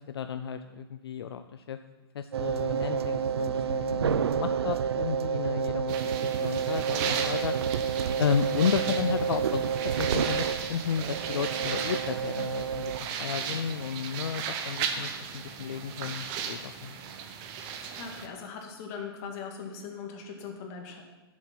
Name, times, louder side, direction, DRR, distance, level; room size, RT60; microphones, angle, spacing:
voice 1, 0.0-1.8 2.1-6.0 6.4-9.7 10.0-12.9 13.2-17.0, left 7 dB, 75° left, 9 dB, 0.6 m, -33 dB
sound 1, 2.3-13.0, right 7 dB, 80° right, 0.5 m, -29 dB
sound 2, 5.9-18.3, right 7 dB, 30° right, 1.0 m, -36 dB
voice 2, 18.0-21.0, left 6 dB, 35° left, 2 dB, 2.1 m, -40 dB
11.0 x 7.3 x 5.9 m, 1.2 s
hypercardioid pair, 140°, 13 cm